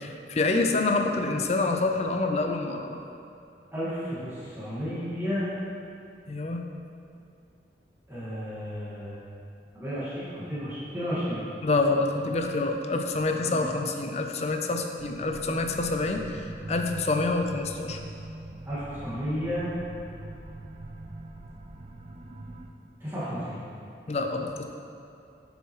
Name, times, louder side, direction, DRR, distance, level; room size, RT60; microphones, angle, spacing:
voice 1, 0.0-3.0 6.3-6.7 11.6-18.0 24.1-24.6, left 3 dB, 35° left, 4 dB, 0.5 m, -27 dB
voice 2, 3.7-5.5 8.1-9.2 9.7-11.4 13.4-13.7 18.7-19.7 23.0-23.6, equal, 15° right, -12 dB, 1.8 m, -32 dB
sound 1, 15.0-22.7, right 2 dB, 35° right, 0.4 m, -41 dB
7.3 x 7.1 x 3.1 m, 2.5 s
head